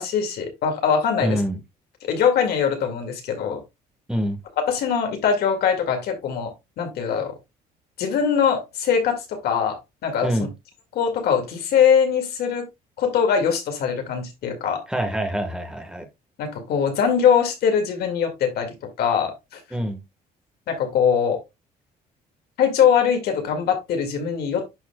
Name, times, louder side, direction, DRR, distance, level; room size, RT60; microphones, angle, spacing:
voice 1, 0.0-1.4 2.0-3.6 4.7-7.3 8.0-10.3 10.9-12.7 13.0-14.8 16.4-19.6 20.7-21.4 22.6-24.6, left 7 dB, 70° left, 2.1 m, -22 dB
voice 2, 1.2-1.6 4.1-4.4 10.2-10.5 14.9-16.0 19.7-20.0, equal, 5° right, 1.4 m, -25 dB
11.0 x 4.2 x 2.2 m
cardioid pair, 110°, 17 cm